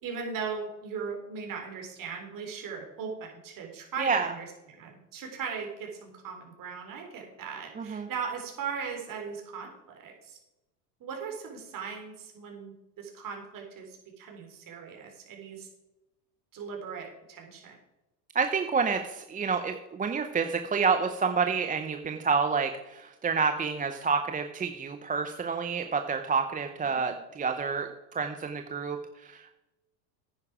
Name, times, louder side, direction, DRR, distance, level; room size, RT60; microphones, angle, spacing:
voice 1, 0.0-10.4 11.0-15.7 16.5-17.8 26.9-27.2, right 6 dB, 40° right, 1 dB, 4.1 m, -38 dB
voice 2, 4.0-4.3 7.8-8.1 18.3-29.5, right 5 dB, 15° right, 6 dB, 0.7 m, -29 dB
10.0 x 9.8 x 4.9 m, 0.99 s
hypercardioid pair, 95°, 48 cm